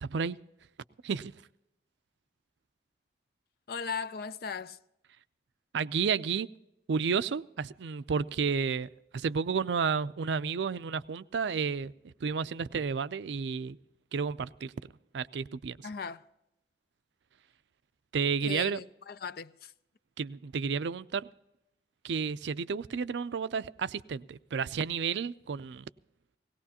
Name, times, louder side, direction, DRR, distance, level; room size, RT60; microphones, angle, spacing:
voice 1, 0.0-0.4 1.0-1.3 5.7-6.5 6.9-13.8 14.1-14.7 15.1-15.9 18.1-18.8 20.2-21.3 22.0-25.9, right 5 dB, 75° right, 0.4 m, -31 dB
voice 2, 3.7-4.8 15.8-16.2 18.4-19.7, left 6 dB, 55° left, 0.5 m, -38 dB
18.5 x 18.0 x 2.8 m
head